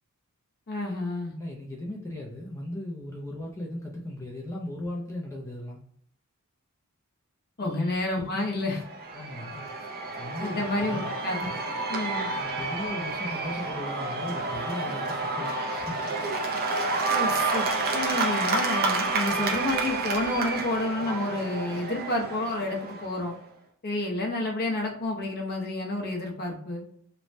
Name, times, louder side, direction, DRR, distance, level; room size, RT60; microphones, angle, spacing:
voice 1, 0.7-1.3 7.6-8.8 10.4-11.5 11.9-12.3 17.1-23.4 23.8-26.8, left 2 dB, 45° left, 0 dB, 0.7 m, -30 dB
voice 2, 1.3-5.8 7.6-7.8 9.1-9.7 10.2-11.1 12.4-16.0, left 1 dB, 15° left, -2 dB, 0.4 m, -37 dB
Cheering / Applause / Crowd, 8.6-23.3, right 3 dB, 45° right, 0.4 m, -30 dB
3.1 x 2.1 x 2.5 m, 0.64 s
head